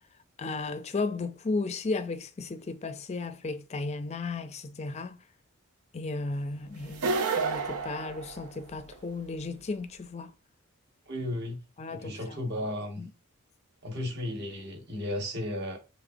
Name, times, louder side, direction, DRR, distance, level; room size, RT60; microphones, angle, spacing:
voice 1, 0.4-5.2 5.9-10.3 11.8-12.4 13.0-13.1, left 3 dB, 30° left, 0.4 m, -34 dB
sound 1, 6.9-8.9, right 4 dB, 80° right, 0.6 m, -30 dB
voice 2, 11.1-11.6 11.9-13.0 13.8-15.8, left 1 dB, 50° right, 1.2 m, -34 dB
5.0 x 3.3 x 2.6 m
head